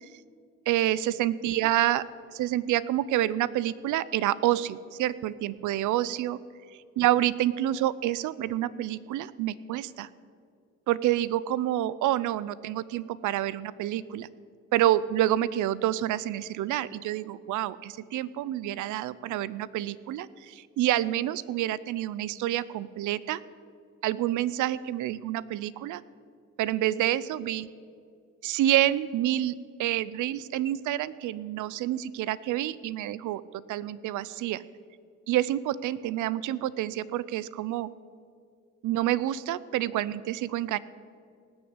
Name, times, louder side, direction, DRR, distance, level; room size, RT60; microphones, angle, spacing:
voice 1, 0.7-2.0 2.3-6.4 7.0-10.1 10.9-14.3 14.7-23.4 24.0-26.0 26.6-27.7 28.4-33.4 33.7-34.6 35.3-37.9 38.8-40.8, right 13 dB, 80° right, 18 dB, 0.6 m, -28 dB
18.5 x 6.3 x 8.0 m, 2.3 s
cardioid pair, 90°, 30 cm